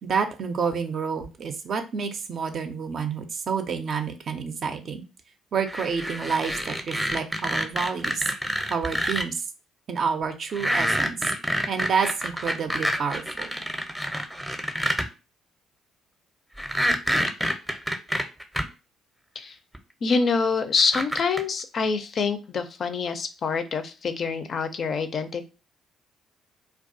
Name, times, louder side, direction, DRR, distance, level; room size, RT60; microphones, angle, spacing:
voice 1, 0.0-5.0 5.5-8.3 8.7-9.5 9.9-11.3 11.7-13.5, right 6 dB, 50° right, 6 dB, 0.4 m, -29 dB
sound 1, 5.7-9.2 10.5-15.1 16.6-18.6 19.7-19.8 20.8-21.4, equal, 5° right, 0.5 m, -27 dB
voice 2, 20.0-25.5, left 5 dB, 50° left, 9 dB, 0.4 m, -26 dB
2.3 x 2.3 x 2.6 m, 0.30 s
hypercardioid pair, 45°, 0 cm